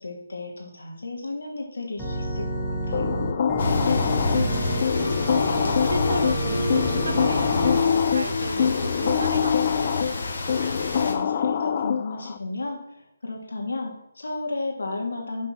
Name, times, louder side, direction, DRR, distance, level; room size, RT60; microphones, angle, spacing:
voice 1, 0.0-3.1 11.0-13.0 13.2-15.5, left 2 dB, 75° left, 1 dB, 2.6 m, -33 dB
Organ, 2.0-7.8, right 1 dB, 10° right, 1.5 m, -30 dB
sound 1, 2.9-12.4, left 7 dB, 35° left, 0.4 m, -25 dB
sound 2, 3.6-11.1, left 3 dB, 55° left, 1.7 m, -27 dB
voice 2, 4.3-10.0, right 3 dB, 80° right, 10 dB, 0.9 m, -34 dB
8.1 x 4.4 x 6.0 m, 0.79 s
figure-of-eight pair, 160°, 0 cm